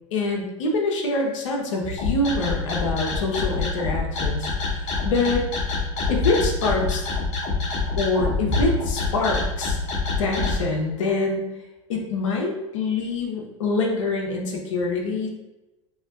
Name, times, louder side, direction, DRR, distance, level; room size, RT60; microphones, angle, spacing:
voice 1, 0.1-5.4 6.1-7.1 8.0-9.8 10.2-11.4 11.9-15.3, left 3 dB, 75° left, 0 dB, 0.9 m, -25 dB
sound 1, 2.0-10.6, left 4 dB, 45° left, 1.1 m, -26 dB
4.2 x 2.8 x 2.5 m, 1.0 s
hypercardioid pair, 90°, 16 cm